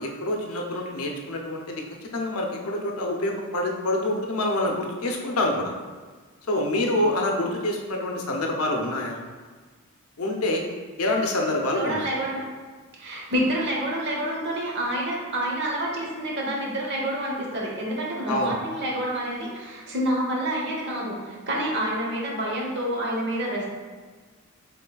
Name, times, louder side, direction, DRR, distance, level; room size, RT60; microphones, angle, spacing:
voice 1, 0.0-1.8 2.1-5.7 6.5-9.2 10.2-10.7 11.0-12.1 18.3-18.6, left 1 dB, 85° left, 1 dB, 0.7 m, -26 dB
voice 2, 11.8-12.4 13.0-23.7, right 1 dB, 55° right, -2 dB, 0.9 m, -28 dB
5.8 x 3.7 x 2.3 m, 1.4 s
head